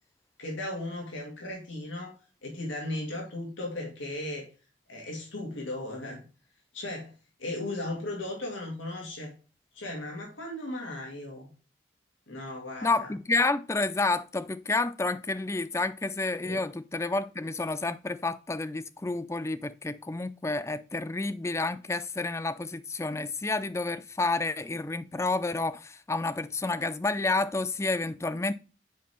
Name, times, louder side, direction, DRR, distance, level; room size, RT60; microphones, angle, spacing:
voice 1, 0.4-2.1 2.4-4.5 4.9-6.2 6.7-7.1 7.4-9.3 9.7-11.5 12.3-13.1 16.4-16.6, left 1 dB, 75° left, 2.2 m, -36 dB
voice 2, 12.8-28.5, left 3 dB, 15° left, 0.3 m, -30 dB
7.5 x 4.5 x 3.3 m
head